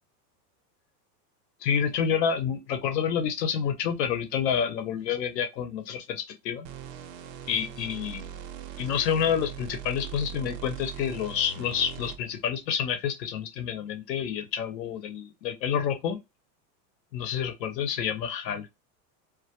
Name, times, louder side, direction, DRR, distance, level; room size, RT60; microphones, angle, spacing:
voice 1, 1.6-6.7 7.5-8.2 8.8-16.2 17.1-18.7, left 8 dB, 85° left, 0.8 m, -28 dB
sound 1, 6.6-12.4, right 8 dB, 80° right, 0.6 m, -40 dB
2.2 x 2.1 x 2.7 m
supercardioid pair, 140°, 48 cm